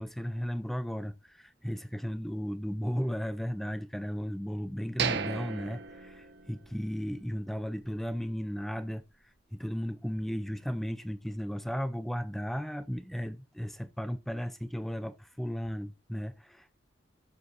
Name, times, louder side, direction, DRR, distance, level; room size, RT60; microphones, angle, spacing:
voice 1, 0.0-9.0 9.5-16.8, equal, ahead, 0.4 m, -35 dB
sound 1, 5.0-6.9 7.2-7.3 7.9-8.0, right 6 dB, 55° right, 0.9 m, -35 dB
13.0 x 5.4 x 3.8 m
head